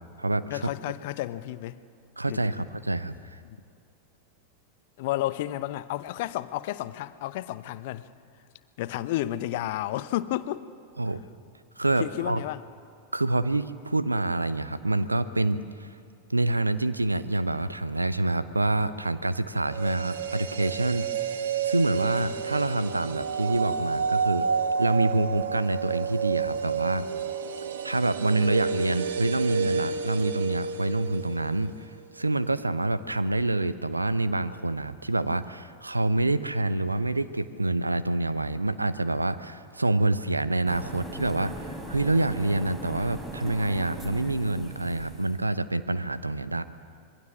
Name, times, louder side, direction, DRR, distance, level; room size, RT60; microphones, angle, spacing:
voice 1, 0.5-1.8 2.3-2.6 3.4-3.6 5.0-8.1 8.8-10.7 12.0-12.6, left 14 dB, 50° left, 0.8 m, -31 dB
voice 2, 2.2-3.1 11.0-11.2 11.8-12.4 13.1-15.9 16.3-21.1 21.6-24.5 24.8-27.1 27.8-31.7 32.1-46.6, right 2 dB, 80° right, 0.8 m, -27 dB
sound 1, 19.6-31.8 32.0-32.1, right 6 dB, 60° right, 1.3 m, -30 dB
sound 2, 40.7-45.4, right 1 dB, 15° right, 3.8 m, -39 dB
26.0 x 22.0 x 7.4 m
figure-of-eight pair, 90°, 0 cm